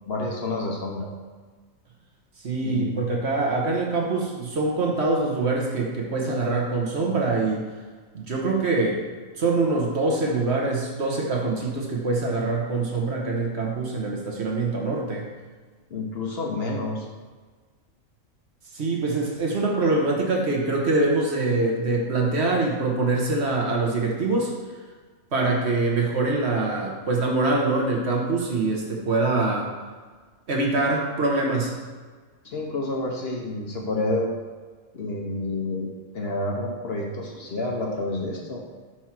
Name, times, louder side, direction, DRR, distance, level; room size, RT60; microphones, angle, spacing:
voice 1, 0.1-1.1 2.6-3.1 15.9-17.1 32.4-34.3 34.9-38.6, left 2 dB, 50° left, -1 dB, 1.0 m, -29 dB
voice 2, 2.4-7.7 8.1-9.1 9.4-15.3 18.7-24.5 25.3-29.7 30.5-31.7, right 3 dB, 55° right, -1 dB, 1.2 m, -24 dB
4.7 x 4.5 x 5.9 m, 1.4 s
omnidirectional pair, 1.4 m